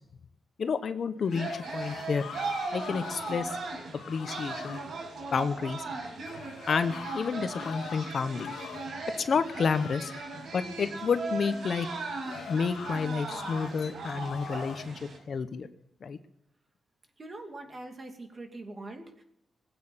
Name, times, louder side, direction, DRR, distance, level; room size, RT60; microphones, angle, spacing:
voice 1, 0.6-2.2 2.7-3.6 4.1-4.8 5.3-5.8 6.7-8.5 9.2-10.1 10.5-11.9 12.5-15.0 15.3-15.7 16.0-16.2, left 5 dB, 50° left, 10 dB, 0.9 m, -30 dB
sound 1, 1.2-3.6 3.9-4.9 6.2-9.0 9.4-10.3 12.2-13.7 14.2-14.9, left 7 dB, 85° left, 1.7 m, -44 dB
sound 2, 1.3-15.2, right 3 dB, 70° right, 5.9 m, -38 dB
voice 2, 17.2-19.2, right 2 dB, 30° right, 4 dB, 2.6 m, -43 dB
20.5 x 8.9 x 7.2 m, 0.82 s
wide cardioid pair, 140°, 0 cm